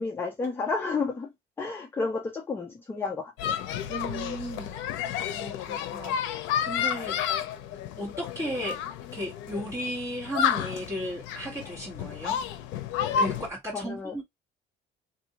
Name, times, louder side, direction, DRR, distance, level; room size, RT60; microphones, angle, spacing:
voice 1, 0.0-1.3 1.6-3.6 13.7-14.2, left 4 dB, 10° left, 0.4 m, -31 dB
sound 1, 3.4-13.5, left 8 dB, 80° left, 0.6 m, -31 dB
voice 2, 3.9-4.7 5.3-6.3 6.6-7.2 8.0-8.8 9.1-12.4 13.2-14.2, equal, 15° right, 1.7 m, -35 dB
2.6 x 2.6 x 2.8 m
cardioid pair, 170°, 19 cm